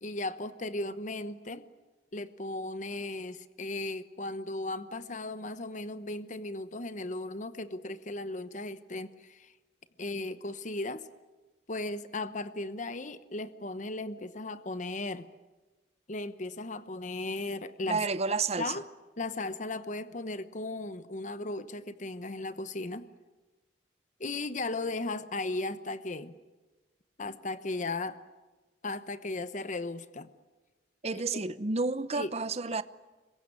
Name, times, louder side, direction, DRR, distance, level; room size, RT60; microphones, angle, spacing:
voice 1, 0.0-1.7 2.1-9.5 10.0-11.0 11.7-15.3 16.1-18.0 18.6-18.8 19.2-23.1 24.2-26.3 27.2-28.2 28.8-30.3 31.1-31.2 32.1-32.3, left 2 dB, 45° left, 1.0 m, -36 dB
voice 2, 17.9-18.8 31.0-32.8, right 4 dB, 35° right, 0.8 m, -30 dB
26.0 x 22.5 x 9.8 m
head